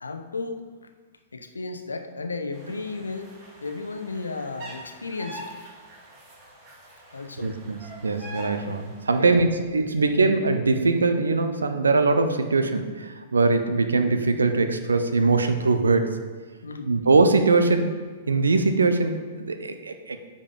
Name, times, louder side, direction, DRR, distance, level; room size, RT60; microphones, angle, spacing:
voice 1, 0.0-0.6 1.3-5.4 7.1-7.5 9.1-9.5 9.9-10.1 16.6-17.0, left 3 dB, 80° left, 7 dB, 0.8 m, -34 dB
sound 1, 2.5-9.2, right 1 dB, 40° right, 2.7 m, -44 dB
voice 2, 7.4-16.2 16.8-18.0 18.3-20.2, right 3 dB, 75° right, 8 dB, 0.7 m, -22 dB
8.5 x 5.3 x 5.5 m, 1.4 s
figure-of-eight pair, 105°, 0 cm